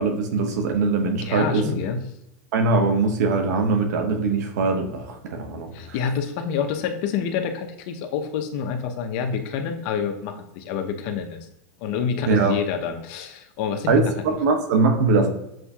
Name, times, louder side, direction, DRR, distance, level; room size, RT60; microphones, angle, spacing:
voice 1, 0.0-1.6 2.5-5.7 12.3-12.6 13.9-15.3, right 3 dB, 70° right, 5 dB, 1.0 m, -21 dB
voice 2, 1.1-2.0 5.7-11.5 11.8-14.0, left 7 dB, 50° left, 5 dB, 0.7 m, -27 dB
7.6 x 2.7 x 2.3 m, 0.86 s
supercardioid pair, 140°, 9 cm